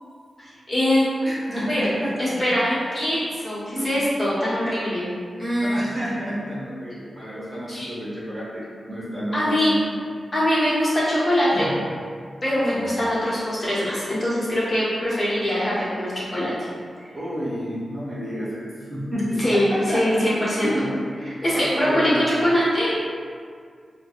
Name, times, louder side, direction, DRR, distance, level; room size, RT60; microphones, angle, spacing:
voice 1, 0.4-1.2 1.7-1.8 2.2-5.1 5.4-5.8 7.7-7.9 9.3-9.7 10.3-11.7 12.4-16.7 19.4-20.7 21.3-23.0, equal, 40° left, -9 dB, 1.0 m, -22 dB
voice 2, 1.2-2.4 3.7-4.1 5.6-9.8 11.5-11.8 12.7-12.9 17.1-20.2 20.6-20.9 21.5-22.2, equal, 25° right, -9 dB, 1.0 m, -30 dB
4.6 x 2.2 x 2.4 m, 2.1 s
wide cardioid pair, 125°, 0 cm